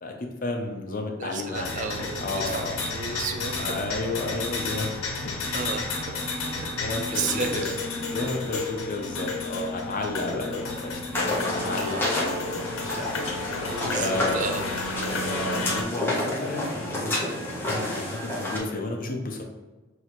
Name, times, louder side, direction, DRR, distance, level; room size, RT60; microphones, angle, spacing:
voice 1, 0.0-2.8 3.6-5.3 6.4-7.7 8.1-13.1 13.5-13.7 13.9-14.4 15.1-19.4, left 2 dB, 40° left, 2 dB, 0.7 m, -32 dB
voice 2, 1.2-3.8 5.5-6.8 7.1-7.8 11.8-12.1 13.8-14.6, right 4 dB, 40° right, 6 dB, 0.4 m, -33 dB
sound 1, 1.5-15.8, left 3 dB, 85° left, 0.8 m, -31 dB
sound 2, 11.1-18.6, left 1 dB, 10° left, 0.9 m, -30 dB
6.2 x 2.8 x 3.0 m, 1.2 s
head